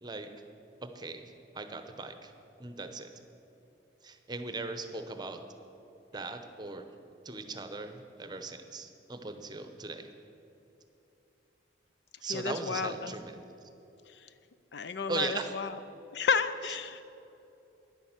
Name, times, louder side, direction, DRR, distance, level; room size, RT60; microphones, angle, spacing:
voice 1, 0.8-2.3 2.6-3.1 4.0-5.4 6.1-6.9 7.2-10.1 12.2-13.4 15.1-15.5, right 3 dB, 20° right, 7 dB, 0.8 m, -39 dB
voice 2, 12.3-13.2 14.7-15.7 16.1-17.0, left 5 dB, 65° left, 12 dB, 0.5 m, -31 dB
10.5 x 10.5 x 7.4 m, 2.9 s
head